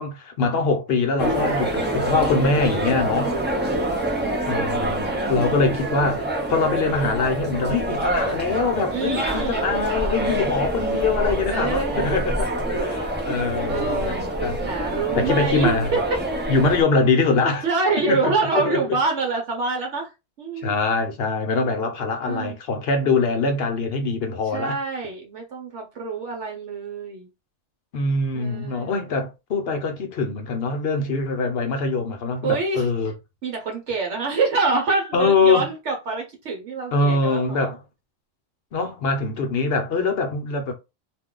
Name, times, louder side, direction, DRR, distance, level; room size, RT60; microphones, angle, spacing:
voice 1, 0.0-3.3 4.4-14.1 14.4-14.6 15.1-15.9 16.5-17.6 18.1-18.2 18.5-18.8 20.6-24.8 27.9-33.1 35.1-35.7 36.9-37.8 38.7-40.7, left 3 dB, 60° left, 0.9 m, -23 dB
sound 1, 1.2-16.8, right 1 dB, 15° right, 0.3 m, -26 dB
voice 2, 1.4-1.9 3.3-4.4 4.8-5.6 8.9-9.7 11.5-12.2 13.6-16.0 17.4-20.1 20.4-20.7 22.2-22.6 24.5-27.3 28.3-29.1 32.4-32.9 33.4-37.7, right 4 dB, 70° right, 1.0 m, -27 dB
2.5 x 2.3 x 3.7 m
omnidirectional pair, 1.3 m